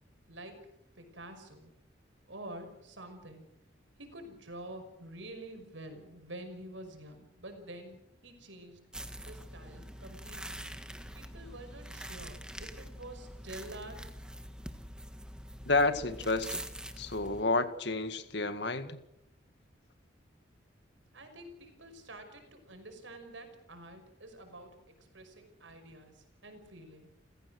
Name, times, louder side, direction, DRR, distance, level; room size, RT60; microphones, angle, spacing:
voice 1, 0.3-0.7 1.0-1.7 2.3-3.4 4.0-8.9 9.2-10.7 11.1-14.0 21.1-27.1, right 1 dB, 80° right, 6 dB, 5.7 m, -48 dB
sound 1, 8.9-17.4, right 1 dB, 5° right, 1.5 m, -45 dB
voice 2, 15.7-16.6 17.0-19.0, left 3 dB, 65° left, 11 dB, 1.9 m, -30 dB
30.0 x 16.0 x 6.5 m, 0.84 s
head